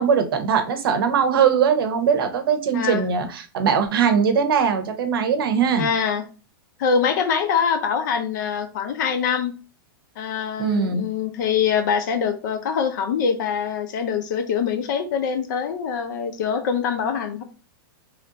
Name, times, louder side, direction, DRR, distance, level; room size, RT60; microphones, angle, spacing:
voice 1, 0.0-5.9 10.6-11.0, right 7 dB, 70° right, 7 dB, 0.7 m, -20 dB
voice 2, 5.8-6.2 6.8-9.5 10.2-17.4, left 6 dB, 50° left, 7 dB, 0.6 m, -24 dB
3.2 x 2.5 x 3.9 m, 0.35 s
supercardioid pair, 165°, 13 cm